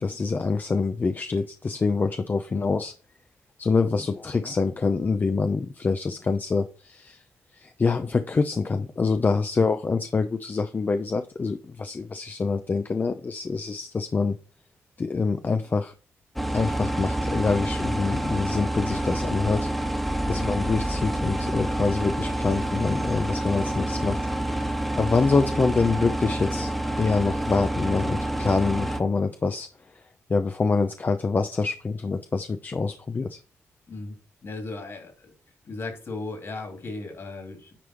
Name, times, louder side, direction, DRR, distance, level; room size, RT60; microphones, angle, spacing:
voice 1, 0.0-2.9 3.6-7.2 7.5-14.4 15.0-15.9 16.5-19.7 20.0-24.2 24.5-26.7 27.0-29.7 30.3-33.4, left 4 dB, 40° left, 7 dB, 0.7 m, -25 dB
sound 1, 16.4-29.0, right 1 dB, ahead, 1.3 m, -28 dB
voice 2, 20.4-20.7 33.9-34.2 34.4-35.3 35.6-37.8, left 3 dB, 55° left, 3 dB, 2.9 m, -36 dB
10.0 x 3.5 x 4.4 m, 0.37 s
cardioid pair, 75°, 5 cm